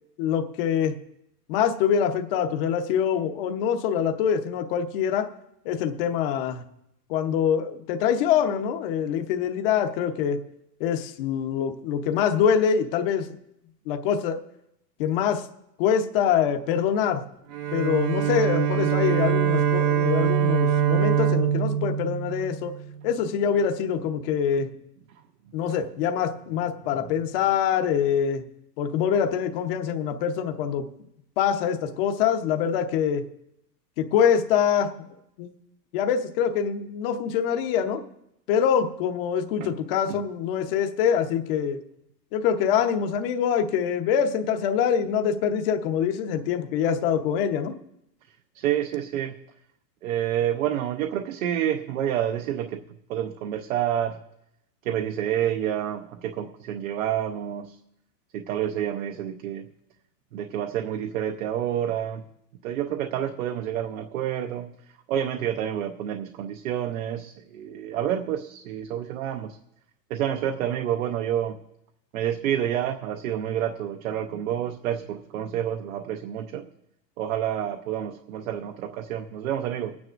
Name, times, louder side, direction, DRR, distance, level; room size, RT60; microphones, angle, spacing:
voice 1, 0.2-0.9 1.5-5.3 5.6-6.6 7.1-10.4 10.8-13.3 13.9-14.4 15.0-15.5 15.8-17.2 17.7-22.7 23.0-24.7 25.5-28.4 28.8-30.8 31.4-33.2 34.0-34.9 35.4-35.5 35.9-38.0 38.5-41.8 42.3-47.7, left 8 dB, 35° left, 7 dB, 0.9 m, -24 dB
Bowed string instrument, 17.5-23.0, right 9 dB, 70° right, 1.1 m, -23 dB
voice 2, 48.5-49.4 50.0-52.8 53.1-54.2 54.8-57.8 58.3-59.7 60.3-62.3 62.6-64.7 65.1-69.6 70.1-71.6 72.1-76.7 77.2-80.0, right 10 dB, 55° right, 5 dB, 0.8 m, -28 dB
24.0 x 9.6 x 2.5 m, 0.81 s
supercardioid pair, 155°, 50 cm